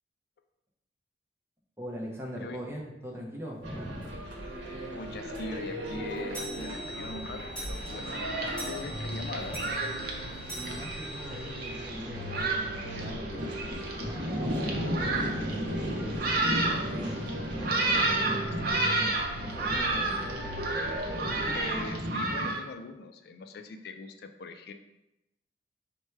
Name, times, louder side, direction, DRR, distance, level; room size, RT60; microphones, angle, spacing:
voice 1, 1.8-4.2 10.5-15.9 16.8-17.2 17.5-19.2 19.4-20.5, equal, 15° right, -2 dB, 0.7 m, -41 dB
sound 1, 3.6-21.9, equal, 85° right, 0.9 m, -38 dB
sound 2, 4.0-4.2 4.6-4.7 5.0-5.1 5.5-11.9, right 1 dB, 5° left, 1.3 m, -43 dB
voice 2, 4.9-8.1 8.4-9.7 17.1-17.5 18.3-18.5 21.5-24.7, left 3 dB, 55° left, 8 dB, 0.3 m, -42 dB
Thunderstorm, 7.8-22.6, right 2 dB, 55° right, 0.6 m, -31 dB
4.3 x 2.2 x 4.6 m, 0.92 s
head